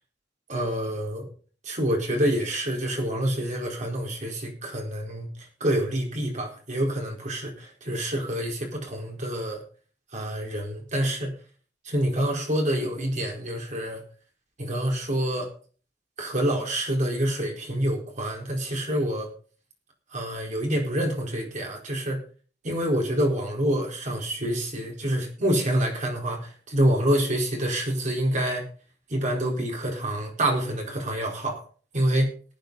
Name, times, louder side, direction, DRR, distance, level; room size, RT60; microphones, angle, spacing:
voice 1, 0.5-1.3 1.6-9.6 10.1-11.3 11.8-14.0 14.6-15.5 16.2-19.3 20.1-22.2 22.6-28.7 29.1-31.6 31.9-32.3, right 1 dB, 45° right, 1 dB, 4.6 m, -27 dB
19.0 x 9.1 x 4.0 m, 0.40 s
head